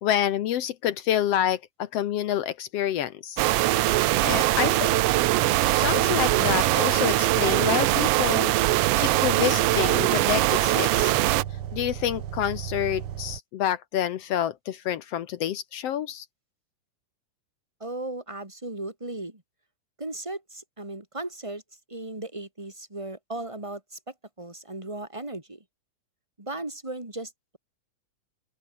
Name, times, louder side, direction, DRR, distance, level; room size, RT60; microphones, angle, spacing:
voice 1, 0.0-3.4 3.8-5.3 5.7-11.1 11.7-16.2, left 11 dB, 65° left, 1.7 m, -28 dB
sound 1, 3.4-11.4, right 16 dB, 80° right, 1.4 m, -22 dB
sound 2, 3.7-13.4, right 10 dB, 55° right, 1.9 m, -35 dB
voice 2, 17.8-19.4 20.0-21.6 21.9-25.6 26.4-27.6, right 2 dB, 10° right, 4.0 m, -36 dB
open air
omnidirectional pair, 3.5 m